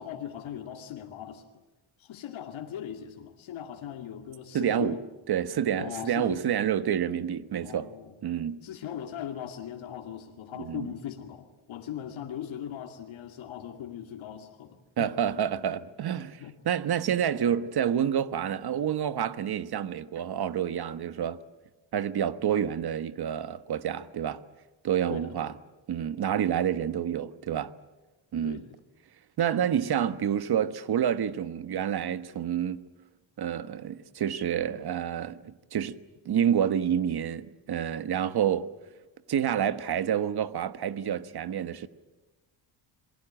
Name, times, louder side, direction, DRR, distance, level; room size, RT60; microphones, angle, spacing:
voice 1, 0.0-1.4 2.0-5.0 5.8-6.5 7.6-8.1 8.6-15.1 16.4-16.5 25.1-25.6 28.4-28.8, left 9 dB, 75° left, 2.5 m, -39 dB
voice 2, 4.5-5.0 5.3-7.9 8.2-8.6 10.6-10.9 15.0-21.4 21.9-24.4 24.8-25.5 25.9-27.7 28.3-28.6 29.4-32.8 33.4-35.9 36.2-38.7 39.3-41.9, right 9 dB, 50° right, 1.3 m, -28 dB
27.5 x 22.0 x 8.9 m
cardioid pair, 120°, 48 cm